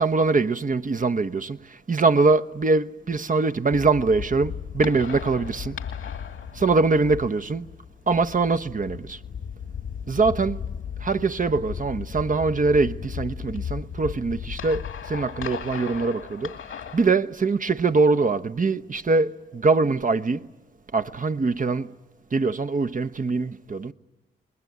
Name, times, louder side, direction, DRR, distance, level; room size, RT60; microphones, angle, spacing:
voice 1, 0.0-5.8 6.5-7.7 8.1-9.2 10.1-10.6 11.0-16.6 16.9-20.5 20.9-21.9 22.3-23.9, right 3 dB, 40° right, 1.0 m, -23 dB
sound 1, 3.7-17.1, left 7 dB, 85° left, 2.1 m, -36 dB
28.5 x 21.0 x 9.8 m
supercardioid pair, 45°, 21 cm